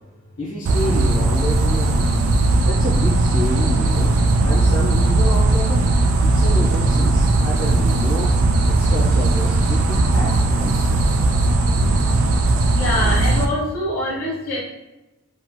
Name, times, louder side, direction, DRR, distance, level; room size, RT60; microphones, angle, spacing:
voice 1, 0.4-2.2 2.7-4.2 4.4-5.8 6.2-8.3 8.7-11.0, left 1 dB, 65° left, -8 dB, 0.7 m, -28 dB
sound 1, 0.7-13.5, right 2 dB, 70° right, 0.3 m, -17 dB
voice 2, 12.7-14.6, left 1 dB, 80° left, -6 dB, 1.3 m, -24 dB
2.9 x 2.7 x 2.2 m, 1.0 s
head